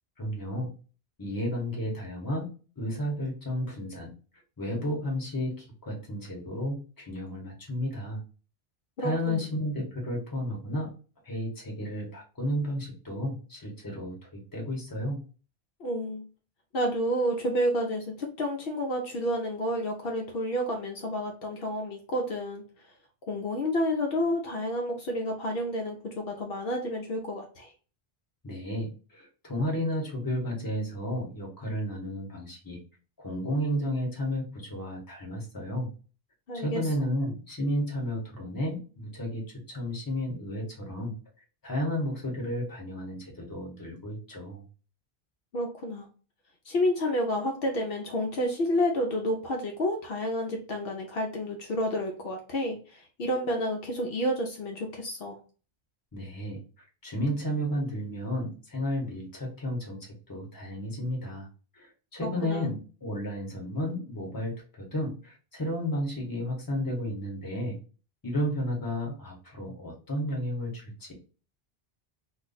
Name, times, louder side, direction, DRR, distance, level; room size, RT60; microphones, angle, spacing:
voice 1, 0.2-0.7 1.2-2.5 2.8-4.1 4.6-8.2 9.0-10.9 11.2-15.2 28.4-32.8 33.2-35.9 36.5-41.1 41.6-44.6 56.1-56.6 57.0-61.5 61.7-67.8 68.2-71.1, equal, 20° left, -2 dB, 0.9 m, -32 dB
voice 2, 9.0-9.4 15.8-16.3 16.7-22.6 23.3-27.7 36.5-36.8 45.5-46.1 46.7-55.4 62.4-62.7, equal, 65° left, 1 dB, 0.8 m, -30 dB
2.4 x 2.2 x 3.8 m, 0.36 s
omnidirectional pair, 1.1 m